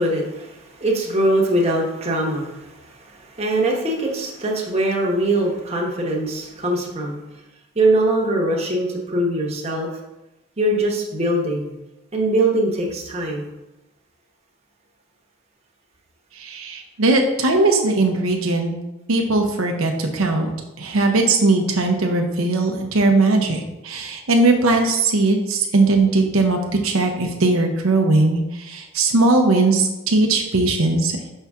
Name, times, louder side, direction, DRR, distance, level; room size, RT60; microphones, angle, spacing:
voice 1, 0.0-7.2 7.7-9.9 10.6-11.7 12.1-13.5, right 1 dB, 30° right, -2 dB, 1.1 m, -22 dB
voice 2, 16.4-18.7 19.1-20.5 20.8-31.2, right 2 dB, 75° right, 2 dB, 0.7 m, -19 dB
5.8 x 5.5 x 3.6 m, 0.97 s
head